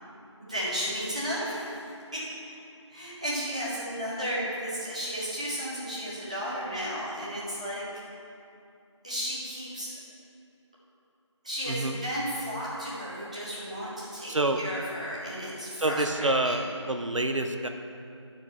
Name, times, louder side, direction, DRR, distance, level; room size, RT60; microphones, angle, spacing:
voice 1, 0.4-1.8 2.1-2.5 2.9-7.8 9.0-9.9 11.4-16.7, equal, 15° right, -9 dB, 0.9 m, -34 dB
voice 2, 11.7-12.0 14.3-14.6 15.8-17.7, right 2 dB, 90° right, 6 dB, 0.6 m, -27 dB
10.5 x 4.6 x 4.4 m, 2.6 s
figure-of-eight pair, 170°, 16 cm